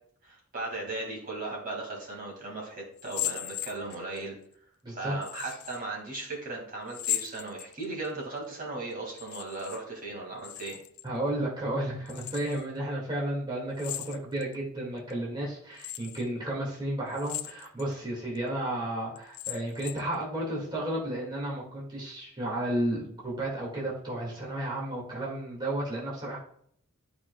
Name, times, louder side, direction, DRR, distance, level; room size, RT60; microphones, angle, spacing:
voice 1, 0.2-4.4 4.9-10.8, right 2 dB, 40° right, -1 dB, 2.0 m, -37 dB
sound 1, 3.0-4.2 5.2-5.8 6.9-8.1 9.1-9.8 10.1-11.1 12.1-12.6 13.8-14.5 15.1-15.2 15.8-16.2 17.1-17.9 18.4-18.5 19.2-20.1, left 13 dB, 85° left, 0.5 m, -37 dB
voice 2, 4.8-5.1 11.0-26.4, right 1 dB, 20° right, -5 dB, 1.9 m, -32 dB
12.0 x 4.9 x 2.2 m, 0.64 s
head